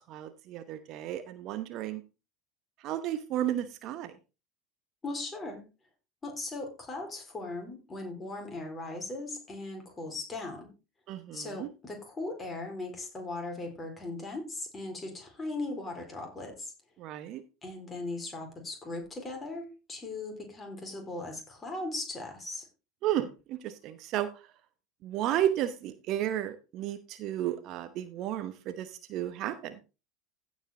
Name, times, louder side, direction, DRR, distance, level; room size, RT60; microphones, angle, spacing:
voice 1, 0.1-2.0 2.8-4.1 11.1-11.7 17.0-17.4 23.0-24.3 25.0-29.7, right 12 dB, 45° right, 11 dB, 1.0 m, -33 dB
voice 2, 5.0-5.6 6.2-10.7 11.3-16.7 17.6-22.6, left 2 dB, 20° left, 3 dB, 4.2 m, -38 dB
16.0 x 5.4 x 3.7 m, 0.30 s
figure-of-eight pair, 75°, 0 cm